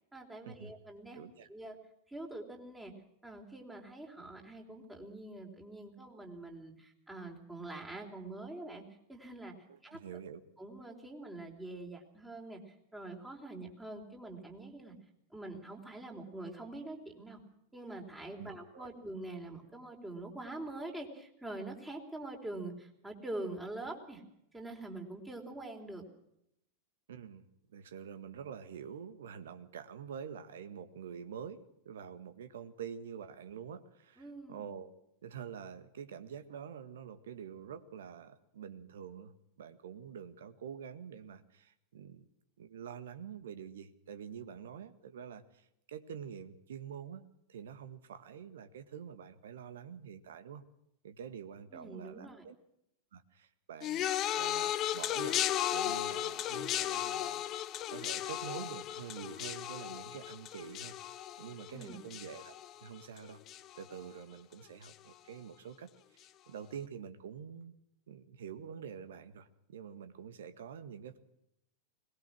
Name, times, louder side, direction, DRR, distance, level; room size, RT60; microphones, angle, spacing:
voice 1, 0.1-1.2 1.5-1.8 2.1-2.9 3.2-8.8 9.1-9.5 9.8-10.0 10.6-14.9 15.3-17.4 17.7-24.2 24.5-26.0 34.2-34.6 51.7-52.4 61.7-62.0, right 2 dB, 10° right, 1 dB, 4.3 m, -45 dB
voice 2, 1.1-1.5 9.7-10.4 18.4-18.9 27.1-34.9 35.2-42.2 42.6-50.6 51.0-52.5 53.1-54.1 54.3-55.4 55.7-61.0 61.4-62.5 62.8-63.4 63.7-67.7 68.1-71.2, right 7 dB, 60° right, 11 dB, 1.7 m, -47 dB
sound 1, 53.8-63.2 63.5-64.0 64.8-64.9, left 12 dB, 35° left, 0.8 m, -35 dB
21.5 x 20.0 x 6.3 m, 0.79 s
figure-of-eight pair, 90°, 0 cm